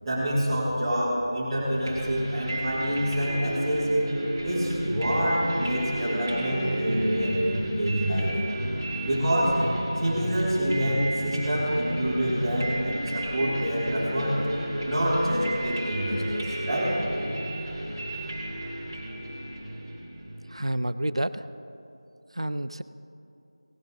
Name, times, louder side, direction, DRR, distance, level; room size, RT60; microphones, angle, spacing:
voice 1, 0.0-3.9 4.4-8.3 9.0-9.6 10.0-14.4 14.8-17.0, equal, 5° right, -15 dB, 3.3 m, -27 dB
sound 1, 1.8-20.5, right 1 dB, 35° right, 2.6 m, -32 dB
voice 2, 20.5-21.4 22.3-22.8, right 1 dB, 85° right, 13 dB, 0.6 m, -29 dB
18.5 x 10.5 x 4.0 m, 2.7 s
figure-of-eight pair, 170°, 3 cm